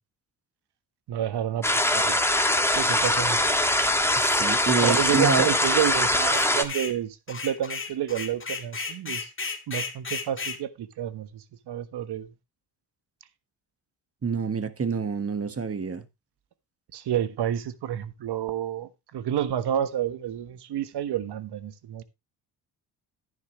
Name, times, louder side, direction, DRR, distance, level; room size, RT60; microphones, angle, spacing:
voice 1, 1.1-2.2 2.7-3.4 4.8-9.3 9.7-12.3 16.9-22.0, right 10 dB, 65° right, 1.4 m, -29 dB
sound 1, 1.6-6.6, left 1 dB, 5° left, 1.7 m, -22 dB
voice 2, 4.2-5.5 14.2-16.0, right 5 dB, 30° right, 1.5 m, -27 dB
sound 2, 6.2-7.0 7.3-10.6, left 4 dB, 30° left, 2.1 m, -34 dB
10.5 x 10.0 x 3.1 m
supercardioid pair, 65°, 43 cm